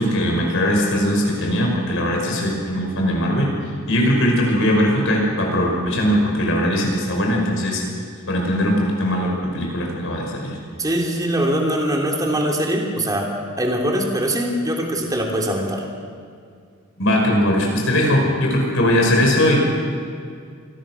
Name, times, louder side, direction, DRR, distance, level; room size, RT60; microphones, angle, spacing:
voice 1, 0.0-3.5 3.9-7.8 8.3-10.6 17.0-19.7, equal, 65° left, -1 dB, 5.5 m, -20 dB
voice 2, 10.8-13.3 13.6-15.8, right 1 dB, 20° right, 0 dB, 3.1 m, -22 dB
26.5 x 19.5 x 6.3 m, 2.2 s
head